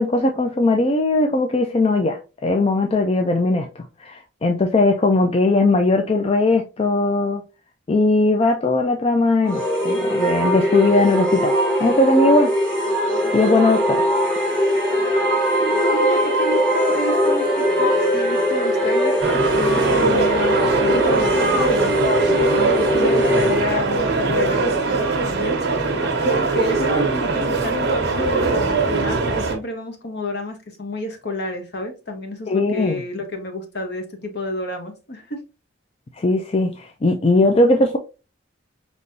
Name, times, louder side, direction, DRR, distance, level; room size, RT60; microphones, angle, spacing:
voice 1, 0.0-7.4 7.9-11.5 11.8-12.5 13.3-14.1 32.5-33.0 36.2-38.0, left 2 dB, 30° left, 0.4 m, -19 dB
sound 1, 9.4-23.6, equal, 5° left, 1.7 m, -20 dB
voice 2, 15.6-35.4, left 1 dB, 60° left, 1.1 m, -30 dB
sound 2, 19.2-29.5, right 3 dB, 55° right, 1.0 m, -21 dB
5.2 x 3.0 x 2.7 m
head